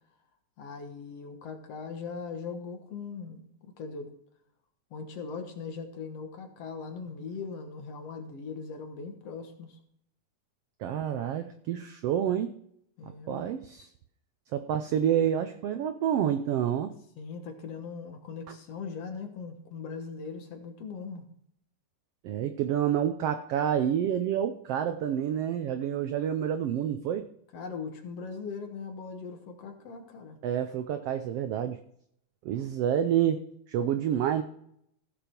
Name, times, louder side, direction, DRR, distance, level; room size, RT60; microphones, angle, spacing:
voice 1, 0.6-4.1 4.9-9.8 13.0-13.5 17.2-21.2 27.5-30.4, left 5 dB, 60° left, 5 dB, 2.1 m, -40 dB
voice 2, 10.8-12.5 13.0-13.9 14.5-17.0 22.2-27.3 30.4-31.8 32.4-33.4 33.7-34.4, right 9 dB, 85° right, 9 dB, 1.3 m, -28 dB
15.5 x 7.0 x 4.4 m, 0.70 s
omnidirectional pair, 3.5 m